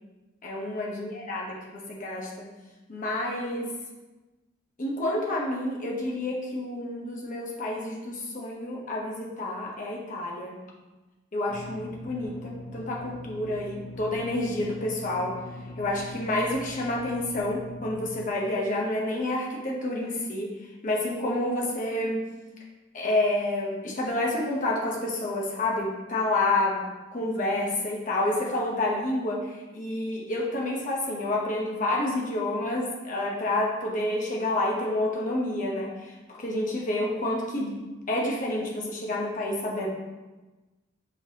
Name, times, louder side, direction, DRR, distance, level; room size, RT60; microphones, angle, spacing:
voice 1, 0.4-2.5 2.9-3.7 4.8-10.6 11.3-15.4 15.8-20.5 20.8-22.3 22.9-37.8 38.1-39.9, left 1 dB, 40° left, -3 dB, 0.8 m, -29 dB
sound 1, 11.5-18.2, left 1 dB, 60° left, 1.3 m, -42 dB
5.8 x 3.2 x 2.8 m, 1.2 s
head